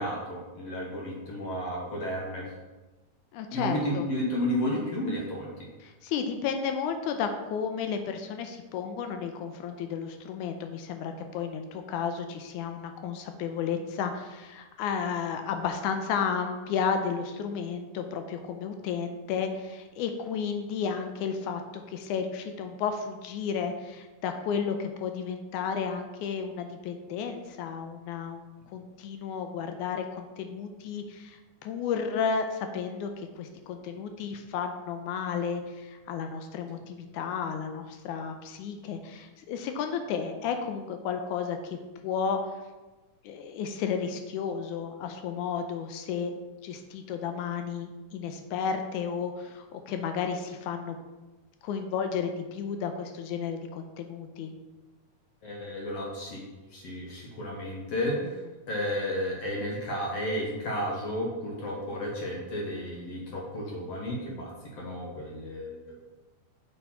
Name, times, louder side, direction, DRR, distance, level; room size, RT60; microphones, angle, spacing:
voice 1, 0.0-2.5 3.5-5.7 55.4-56.4 56.7-58.4 58.7-66.0, equal, 65° left, -2 dB, 1.8 m, -32 dB
voice 2, 3.3-4.1 5.8-41.8 42.0-42.4 43.2-46.3 46.6-51.0 51.6-54.5, left 6 dB, 80° left, 6 dB, 2.0 m, -33 dB
6.7 x 5.7 x 4.2 m, 1.2 s
omnidirectional pair, 3.7 m